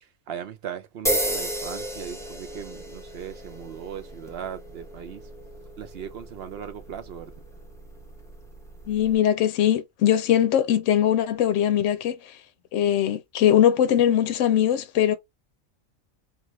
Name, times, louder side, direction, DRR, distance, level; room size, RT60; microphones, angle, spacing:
voice 1, 0.0-5.3 5.8-7.3, right 8 dB, 60° right, 0.7 m, -38 dB
sound 1, 1.1-9.2, equal, 5° left, 0.5 m, -34 dB
voice 2, 8.9-12.4 12.7-15.2, left 10 dB, 70° left, 0.9 m, -21 dB
2.8 x 2.3 x 3.0 m
omnidirectional pair, 1.4 m